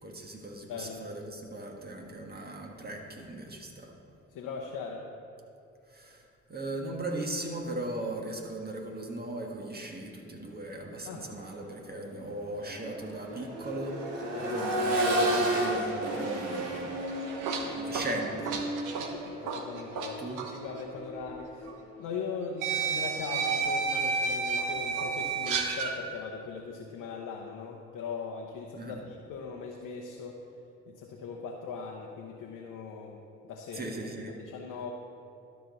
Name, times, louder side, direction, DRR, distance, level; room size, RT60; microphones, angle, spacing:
voice 1, 0.0-3.9 5.9-17.2 17.6-18.6 20.2-20.4 28.8-29.0 33.7-34.3, right 1 dB, 25° right, 1 dB, 1.6 m, -38 dB
voice 2, 0.7-1.1 4.3-5.1 11.1-11.3 14.3-14.6 19.0-20.2 20.6-21.7 22.0-30.4 30.9-33.9 34.3-34.9, left 5 dB, 65° left, 0 dB, 1.0 m, -40 dB
Accelerating revving vroom, 11.3-11.5 11.9-21.8 23.5-23.6, right 1 dB, 85° right, 1.2 m, -33 dB
sound 1, 17.1-20.1 20.4-20.6 21.7-21.8 22.6-25.9, right 5 dB, 65° right, 1.0 m, -31 dB
12.5 x 5.2 x 4.1 m, 2.6 s
hypercardioid pair, 55°, 34 cm